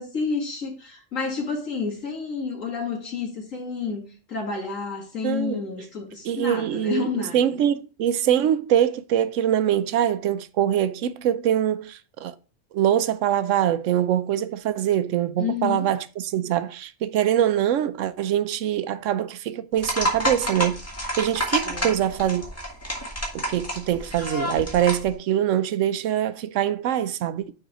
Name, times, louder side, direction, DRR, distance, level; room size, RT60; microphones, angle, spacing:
voice 1, 0.0-7.4 15.4-15.9 21.6-21.9, left 5 dB, 85° left, 2.7 m, -30 dB
voice 2, 5.2-5.6 6.2-12.3 12.7-20.8 21.2-22.4 23.3-27.5, right 10 dB, 75° right, 0.9 m, -23 dB
sound 1, 19.8-25.1, equal, 10° left, 1.7 m, -29 dB
6.5 x 4.9 x 4.8 m
omnidirectional pair, 1.3 m